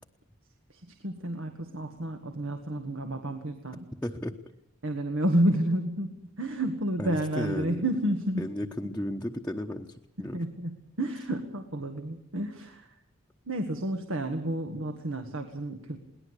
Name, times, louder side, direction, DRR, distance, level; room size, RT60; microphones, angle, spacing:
voice 1, 0.7-3.9 4.8-8.5 10.3-13.0 13.5-16.0, right 1 dB, 85° right, 6 dB, 1.9 m, -30 dB
voice 2, 4.0-4.3 7.0-7.8 8.4-9.9 10.2-10.4, left 1 dB, 5° left, -1 dB, 1.0 m, -34 dB
22.0 x 18.5 x 8.3 m, 0.79 s
head